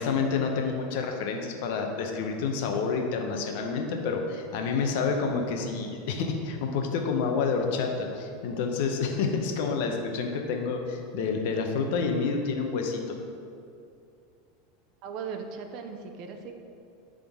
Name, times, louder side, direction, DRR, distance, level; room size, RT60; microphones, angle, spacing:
voice 1, 0.0-13.2, left 5 dB, 65° left, 3 dB, 0.9 m, -28 dB
voice 2, 15.0-16.5, right 6 dB, 50° right, 5 dB, 0.6 m, -38 dB
11.0 x 3.8 x 3.7 m, 2.5 s
supercardioid pair, 130°, 0 cm